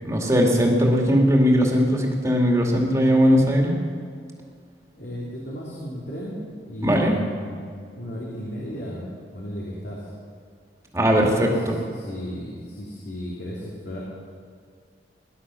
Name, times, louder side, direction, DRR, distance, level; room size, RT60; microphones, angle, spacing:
voice 1, 0.0-3.8 6.8-7.2 10.9-11.8, equal, 20° right, 0 dB, 2.3 m, -19 dB
voice 2, 4.9-6.4 6.7-10.0 11.2-11.6 11.9-14.0, equal, 70° left, -6 dB, 3.2 m, -34 dB
18.5 x 11.5 x 6.2 m, 2.1 s
head